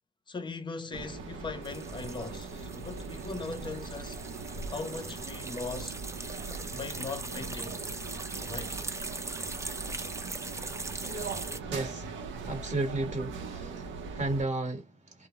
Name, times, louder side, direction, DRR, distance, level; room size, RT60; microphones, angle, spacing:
voice 1, 0.3-4.2 4.7-6.0 6.7-7.8 8.4-8.8, left 4 dB, 25° left, 0.7 m, -39 dB
sound 1, 0.9-14.4, right 4 dB, 75° right, 0.7 m, -40 dB
sound 2, 1.6-11.6, right 3 dB, 15° right, 0.5 m, -41 dB
voice 2, 11.7-15.3, right 2 dB, 35° right, 1.0 m, -34 dB
2.2 x 2.0 x 2.9 m
cardioid pair, 90°, 20 cm